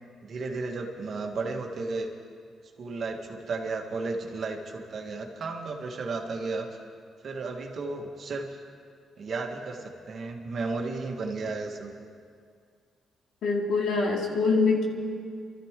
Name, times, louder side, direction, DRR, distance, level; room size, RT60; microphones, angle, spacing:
voice 1, 0.2-2.1 2.8-6.7 7.2-8.6 9.2-11.9, right 3 dB, 50° right, 2 dB, 1.8 m, -33 dB
voice 2, 13.4-14.9, left 4 dB, 75° left, -1 dB, 2.6 m, -24 dB
26.5 x 13.5 x 3.8 m, 2.2 s
cardioid pair, 125°, 0 cm